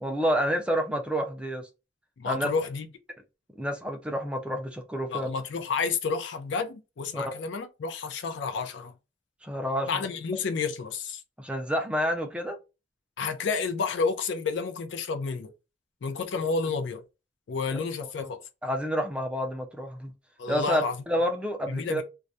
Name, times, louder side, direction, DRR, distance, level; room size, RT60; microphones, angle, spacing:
voice 1, 0.0-1.7 2.3-2.5 3.6-5.3 7.1-7.3 9.4-10.0 11.4-12.6 18.2-18.3 18.6-20.1 20.5-22.0, equal, 5° right, 0.3 m, -29 dB
voice 2, 2.2-2.9 5.1-8.9 9.9-11.2 13.2-15.5 16.0-17.0 17.5-18.4 20.4-21.0 21.7-22.0, left 5 dB, 75° left, 0.4 m, -30 dB
2.3 x 2.0 x 2.6 m
head